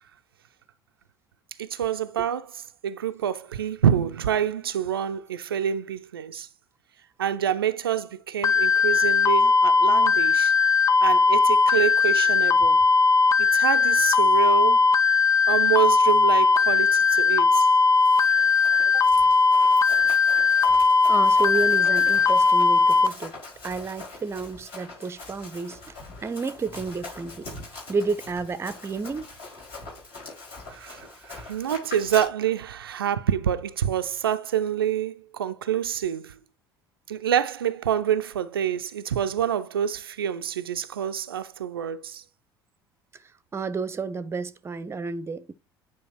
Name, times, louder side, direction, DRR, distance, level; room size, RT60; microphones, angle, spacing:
voice 1, 1.6-2.5 2.8-6.5 7.2-10.5 11.0-12.8 13.4-14.9 15.5-17.7 30.7-36.4 37.1-42.2, right 9 dB, 75° right, 0.4 m, -27 dB
sound 1, 8.4-23.1, left 4 dB, 25° left, 0.4 m, -19 dB
Run, 17.7-32.3, left 3 dB, 55° left, 4.8 m, -42 dB
voice 2, 21.1-23.4 23.6-27.5 27.9-29.3 43.1-45.5, right 4 dB, 20° right, 0.6 m, -31 dB
9.3 x 4.8 x 3.0 m
figure-of-eight pair, 60°, 12 cm